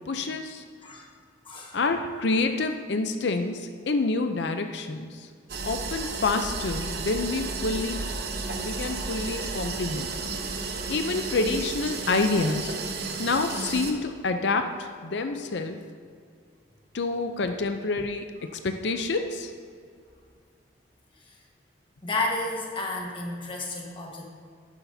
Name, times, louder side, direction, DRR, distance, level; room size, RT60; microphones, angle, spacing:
voice 1, 0.1-0.6 1.7-5.3 5.6-8.0 8.6-10.1 10.9-12.7 13.2-15.8 16.9-19.5, left 3 dB, 70° left, 7 dB, 0.6 m, -28 dB
voice 2, 1.4-1.8 21.2-21.4 22.0-24.3, left 2 dB, 25° left, -1 dB, 1.4 m, -32 dB
sound 1, 5.5-13.9, right 3 dB, 55° right, 0.9 m, -33 dB
11.5 x 10.0 x 2.7 m, 2.1 s
head